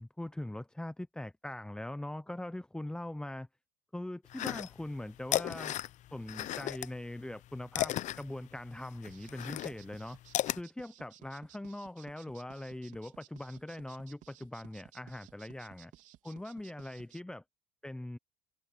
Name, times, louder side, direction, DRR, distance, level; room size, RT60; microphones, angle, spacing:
voice 1, 0.0-3.5 3.9-5.8 6.1-10.2 10.5-15.9 16.2-17.4 17.8-18.2, left 1 dB, 5° left, 0.8 m, -42 dB
sound 1, 4.3-5.0 5.2-6.9 7.2-10.6, left 14 dB, 50° left, 0.9 m, -34 dB
sound 2, 9.1-17.2, right 13 dB, 50° right, 3.7 m, -57 dB
hypercardioid pair, 85°, 16 cm